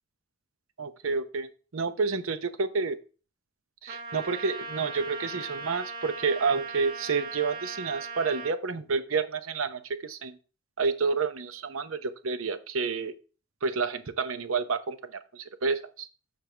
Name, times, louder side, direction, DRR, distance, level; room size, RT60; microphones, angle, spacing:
voice 1, 0.8-3.0 3.8-10.4 10.8-13.1 13.6-16.1, right 4 dB, 80° right, 11 dB, 0.8 m, -29 dB
Trumpet, 3.9-8.5, right 4 dB, 45° right, 1.3 m, -39 dB
6.8 x 6.5 x 3.3 m, 0.35 s
head